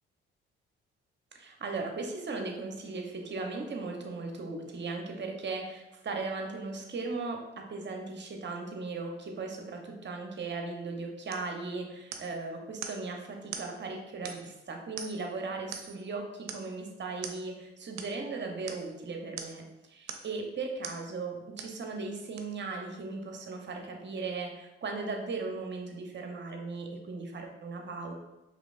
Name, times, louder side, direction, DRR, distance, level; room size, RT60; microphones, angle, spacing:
voice 1, 1.3-28.1, right 3 dB, 35° right, 3 dB, 0.9 m, -37 dB
sound 1, 11.3-11.5 12.1-12.4 12.8-13.0 13.5-13.7 14.3-14.6 15.0-15.3 15.7-16.0 16.5-16.7 17.2-17.4 18.0-18.1 18.7-18.9 19.4-19.6 20.1-20.4 20.8-21.0 21.6-21.8 22.4-22.5, right 7 dB, 60° right, 0.6 m, -42 dB
5.0 x 3.4 x 2.5 m, 0.98 s
hypercardioid pair, 50°, 31 cm